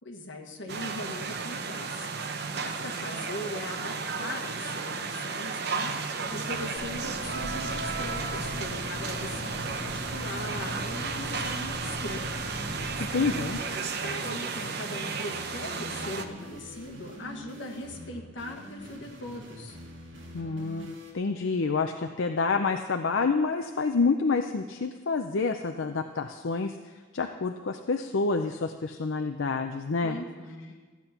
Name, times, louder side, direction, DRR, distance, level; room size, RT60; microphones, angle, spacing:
voice 1, 0.0-5.9 6.3-12.4 13.8-19.8 30.0-30.7, left 1 dB, 70° left, 2 dB, 1.6 m, -40 dB
sound 1, 0.7-16.2, right 4 dB, 55° right, 0.9 m, -34 dB
sound 2, 6.0-21.1, equal, 75° right, 2.1 m, -45 dB
sound 3, 6.7-13.6, left 1 dB, 35° right, 4.2 m, -39 dB
voice 2, 13.1-13.6 20.3-26.7 27.1-30.2, left 4 dB, 85° left, 5 dB, 0.6 m, -28 dB
14.0 x 8.3 x 5.8 m, 1.4 s
head